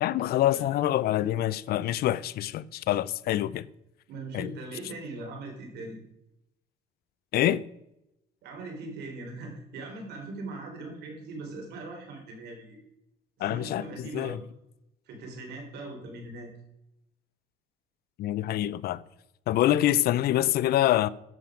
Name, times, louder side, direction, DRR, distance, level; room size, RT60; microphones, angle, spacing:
voice 1, 0.0-3.6 4.3-4.5 7.3-7.6 13.4-14.4 18.2-19.0 19.5-21.1, left 13 dB, 65° left, 0.5 m, -26 dB
voice 2, 4.1-6.0 8.4-12.8 13.4-14.4 15.1-16.5, right 2 dB, 75° right, 3.9 m, -40 dB
11.0 x 7.5 x 5.0 m
cardioid pair, 110°, 17 cm